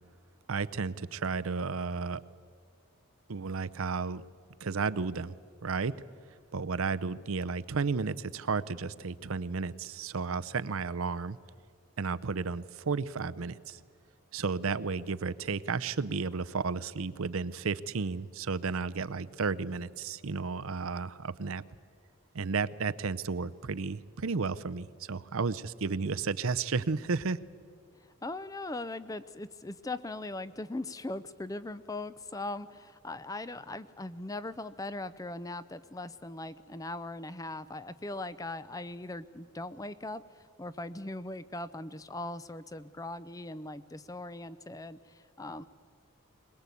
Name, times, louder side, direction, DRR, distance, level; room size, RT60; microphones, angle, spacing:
voice 1, 0.5-2.2 3.3-4.2 4.6-5.3 5.6-5.9 6.5-11.4 12.0-13.8 14.3-21.6 22.3-27.4, right 4 dB, 80° right, 14 dB, 0.6 m, -33 dB
voice 2, 28.0-45.6, left 2 dB, 15° left, 15 dB, 0.5 m, -40 dB
22.0 x 20.5 x 8.3 m, 2.1 s
head